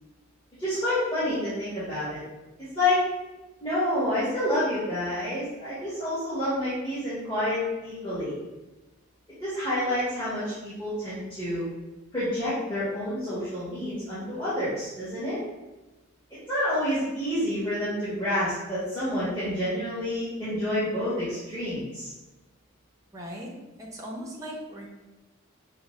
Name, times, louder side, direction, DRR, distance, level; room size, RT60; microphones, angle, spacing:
voice 1, 0.6-2.2 2.7-3.0 3.6-8.3 9.4-11.6 12.1-15.4 16.5-22.1, left 1 dB, 20° left, -13 dB, 1.3 m, -28 dB
voice 2, 23.1-23.5 23.8-24.9, equal, 15° right, -2 dB, 0.6 m, -38 dB
5.4 x 2.1 x 3.1 m, 1.1 s
head